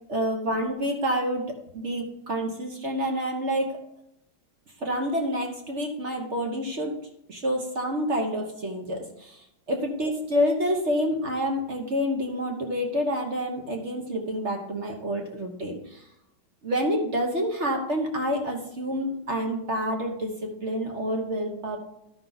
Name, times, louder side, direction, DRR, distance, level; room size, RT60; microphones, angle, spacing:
voice 1, 0.1-1.4 1.7-3.8 4.8-6.9 7.3-16.0 16.6-21.8, equal, 40° right, 2 dB, 1.1 m, -28 dB
11.5 x 5.7 x 4.0 m, 0.82 s
omnidirectional pair, 2.3 m